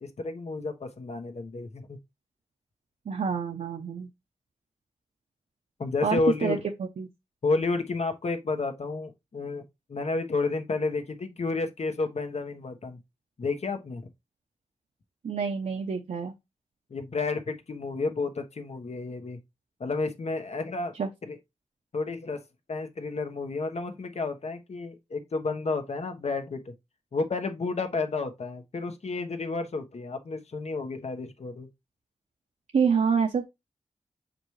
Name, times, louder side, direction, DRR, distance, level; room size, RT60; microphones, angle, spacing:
voice 1, 0.0-2.0 5.8-6.6 7.4-13.0 13.4-14.1 16.9-19.4 19.8-20.9 21.2-21.4 21.9-22.4 22.7-26.7 27.1-31.7, left 3 dB, 65° left, 1.3 m, -31 dB
voice 2, 3.1-4.1 6.0-7.1 15.2-16.3 21.0-21.1 32.7-33.4, right 6 dB, 80° right, 0.8 m, -27 dB
7.1 x 5.1 x 3.2 m
wide cardioid pair, 105°, 12 cm